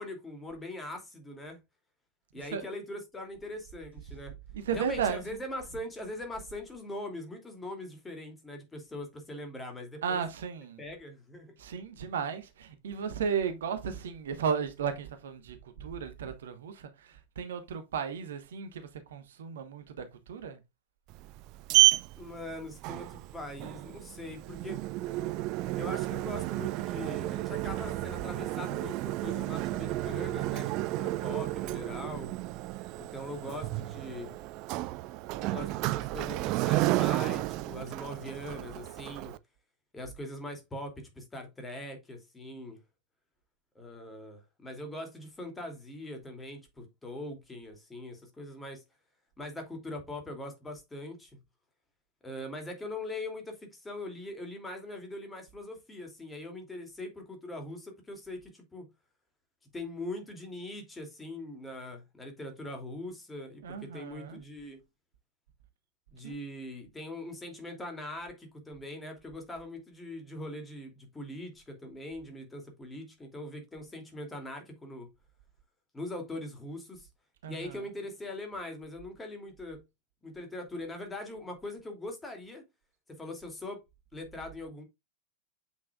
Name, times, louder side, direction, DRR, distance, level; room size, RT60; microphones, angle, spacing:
voice 1, 0.0-1.6 2.3-4.3 4.7-10.2 10.8-11.6 22.1-24.8 25.8-32.3 33.0-34.3 35.4-39.4 39.9-42.8 43.7-48.8 49.4-51.3 52.2-58.9 59.7-64.8 66.1-75.1 75.9-77.1 77.5-79.8 80.2-82.7 83.1-83.8 84.1-84.8, left 1 dB, 10° left, 2.6 m, -41 dB
voice 2, 4.6-5.2 10.0-10.8 11.6-20.6 63.6-64.4 66.2-66.4 77.4-77.8, right 7 dB, 60° right, 1.2 m, -35 dB
Sliding door, 21.1-39.4, right 19 dB, 40° right, 0.4 m, -31 dB
8.3 x 6.1 x 2.3 m
figure-of-eight pair, 90°, 0 cm